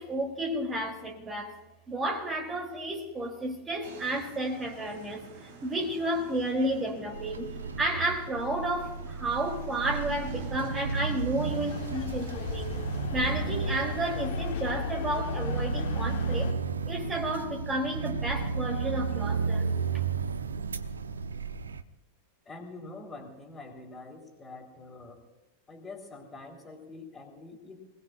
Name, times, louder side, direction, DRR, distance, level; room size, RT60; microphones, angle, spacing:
voice 1, 0.0-1.5 1.9-7.5 7.8-12.8 13.1-16.5 16.9-19.7, right 1 dB, 15° right, 3.2 m, -32 dB
sound 1, 3.8-13.1, right 4 dB, 55° right, 4.2 m, -47 dB
sound 2, 7.1-21.8, right 5 dB, 70° right, 0.8 m, -33 dB
sound 3, 11.4-16.5, left 7 dB, 50° left, 1.2 m, -36 dB
voice 2, 22.5-25.2 25.7-27.8, left 3 dB, 15° left, 3.9 m, -45 dB
28.5 x 20.0 x 2.6 m
figure-of-eight pair, 90°, 0 cm